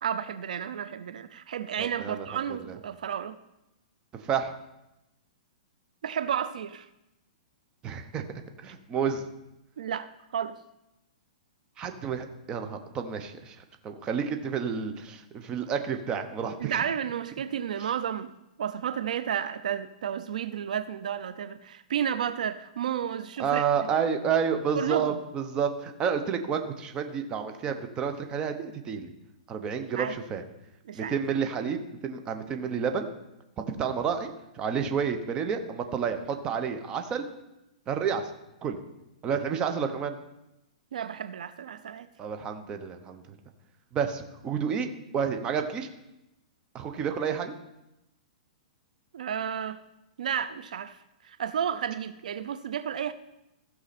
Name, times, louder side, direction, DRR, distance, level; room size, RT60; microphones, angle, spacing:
voice 1, 0.0-3.4 6.0-6.9 9.8-10.6 16.6-18.3 18.6-23.9 24.8-25.2 29.8-30.2 30.9-31.1 40.9-42.1 49.1-49.8 50.2-51.0 51.2-53.1, right 8 dB, 75° right, 12 dB, 0.5 m, -32 dB
voice 2, 1.8-2.3 4.2-4.5 7.8-8.2 8.6-9.2 11.8-13.6 13.8-16.8 23.4-29.1 29.5-30.4 30.9-33.1 33.8-37.2 37.9-38.2 38.6-38.8 39.2-40.2 42.2-43.2 43.9-44.9 45.1-45.9 46.7-47.6, right 7 dB, 20° right, 6 dB, 0.9 m, -30 dB
15.0 x 6.3 x 4.2 m, 0.91 s
hypercardioid pair, 160°, 4 cm